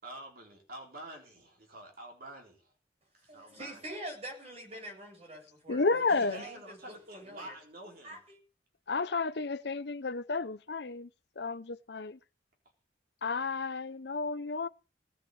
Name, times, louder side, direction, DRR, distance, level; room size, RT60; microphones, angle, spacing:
voice 1, 0.0-2.7 3.1-3.8 6.1-8.2, right 1 dB, 50° right, 4.0 m, -48 dB
voice 2, 3.3-6.0 6.3-7.5 8.0-8.4, right 1 dB, 35° right, 7.8 m, -45 dB
voice 3, 5.7-6.4 8.9-11.1 11.4-12.2 13.2-14.7, left 4 dB, 60° left, 0.7 m, -31 dB
18.0 x 6.2 x 7.9 m
head